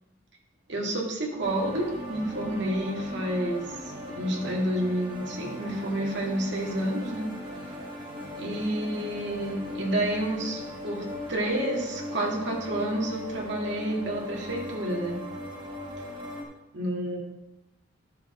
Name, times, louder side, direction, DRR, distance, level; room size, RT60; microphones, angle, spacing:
voice 1, 0.7-7.3 8.4-15.2 16.7-17.2, right 1 dB, 60° right, -2 dB, 2.0 m, -30 dB
sound 1, 1.4-16.4, left 1 dB, 25° right, 1.5 m, -38 dB
11.0 x 6.8 x 3.8 m, 0.98 s
head